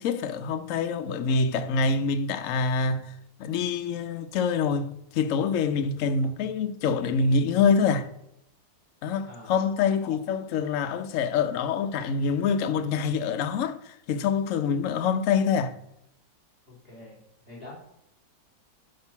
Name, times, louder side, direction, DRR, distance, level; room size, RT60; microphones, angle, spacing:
voice 1, 0.0-3.1 3.4-8.1 9.0-15.8, left 5 dB, 65° left, 0.8 m, -26 dB
voice 2, 9.2-9.6 16.6-17.8, left 2 dB, 20° right, 3.1 m, -46 dB
11.0 x 3.9 x 5.8 m
omnidirectional pair, 2.0 m